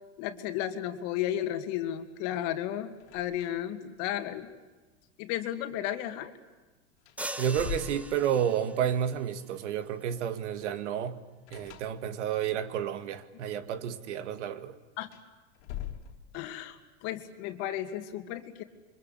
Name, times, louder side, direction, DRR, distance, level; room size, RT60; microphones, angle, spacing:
voice 1, 0.2-4.5 5.2-6.3 15.0-15.1 16.3-18.6, left 11 dB, 55° left, 2.6 m, -34 dB
sound 1, 3.0-3.8 4.1-4.2 6.5-6.6 7.0-8.7 11.5-12.4 15.0-16.6, left 10 dB, 75° left, 3.1 m, -42 dB
sound 2, 7.2-9.0, right 1 dB, 5° right, 1.1 m, -40 dB
voice 2, 7.4-11.2 11.5-14.8, right 9 dB, 80° right, 2.1 m, -31 dB
28.0 x 24.5 x 8.5 m
supercardioid pair, 130°, 35 cm